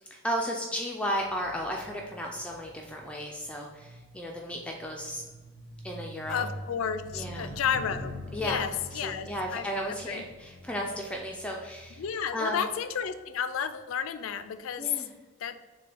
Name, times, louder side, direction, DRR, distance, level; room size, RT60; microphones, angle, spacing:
voice 1, 0.1-5.2 5.8-6.5 7.1-7.5 8.3-8.6 8.9-12.0 12.3-12.6 14.8-15.1, equal, 5° left, 0 dB, 0.3 m, -34 dB
sound 1, 1.2-12.8 13.5-13.8, equal, 50° right, 0.6 m, -45 dB
voice 2, 6.3-10.2 12.0-15.0 15.4-15.5, left 7 dB, 80° left, 11 dB, 0.4 m, -32 dB
6.7 x 2.3 x 3.3 m, 1.3 s
head